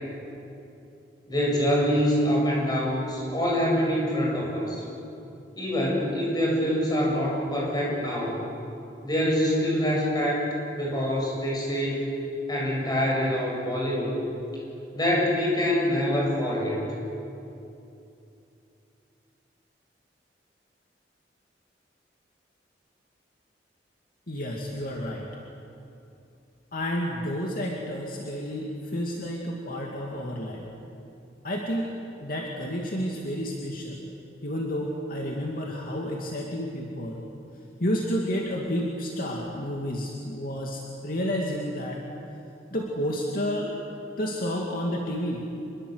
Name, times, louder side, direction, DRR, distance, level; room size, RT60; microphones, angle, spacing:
voice 1, 1.3-4.8 5.6-8.4 9.0-10.5 10.7-12.1 12.5-14.2 14.9-16.8, equal, 25° left, -3 dB, 7.7 m, -25 dB
voice 2, 24.3-25.3 26.7-30.7 31.4-31.9 32.2-34.0 34.4-37.2 37.8-42.0 42.7-43.7 44.2-45.4, equal, 55° left, -1 dB, 2.5 m, -30 dB
26.5 x 21.5 x 8.2 m, 2.8 s
head